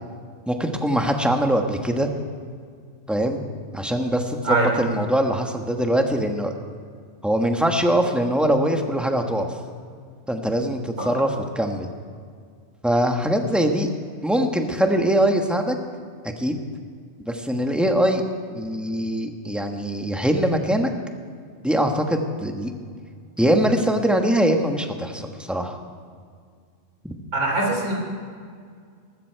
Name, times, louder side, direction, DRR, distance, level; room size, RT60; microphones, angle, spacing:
voice 1, 0.5-2.1 3.1-3.4 3.7-6.5 7.2-9.6 10.3-11.9 12.8-13.9 14.2-15.7 16.4-16.6 17.3-18.2 18.5-20.9 21.6-22.7 23.4-25.8 27.0-27.2, right 1 dB, ahead, 3 dB, 1.1 m, -22 dB
voice 2, 27.3-27.9, right 2 dB, 85° right, -1 dB, 4.0 m, -22 dB
19.5 x 14.5 x 4.6 m, 2.1 s
omnidirectional pair, 1.5 m